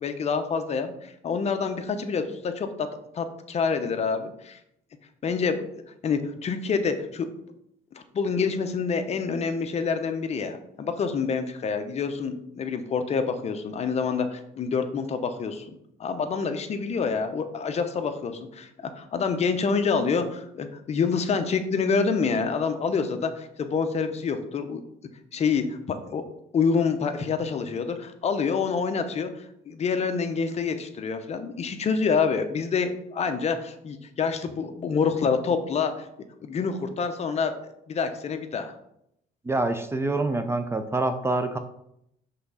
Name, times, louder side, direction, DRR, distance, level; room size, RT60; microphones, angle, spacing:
voice 1, 0.0-2.9 3.1-4.6 5.2-5.6 6.0-7.3 7.9-24.8 25.3-26.2 26.5-29.3 29.7-36.0 36.4-38.7, left 5 dB, 40° left, 8 dB, 0.7 m, -27 dB
voice 2, 39.4-41.6, right 2 dB, 15° right, 8 dB, 0.5 m, -26 dB
5.8 x 3.5 x 5.5 m, 0.77 s
cardioid pair, 110°, 17 cm